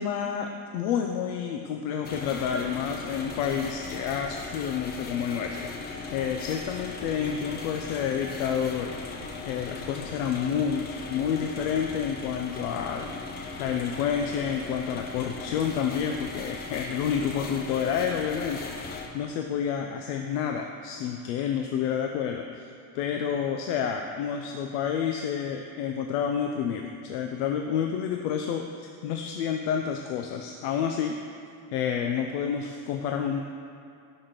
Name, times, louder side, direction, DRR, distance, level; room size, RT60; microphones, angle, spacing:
voice 1, 0.0-9.0 9.5-13.1 13.6-31.2 31.7-33.4, left 7 dB, 90° left, 4 dB, 0.5 m, -29 dB
sound 1, 2.0-19.1, left 4 dB, 25° left, 0.3 m, -38 dB
6.0 x 4.1 x 4.9 m, 2.5 s
supercardioid pair, 130°, 45 cm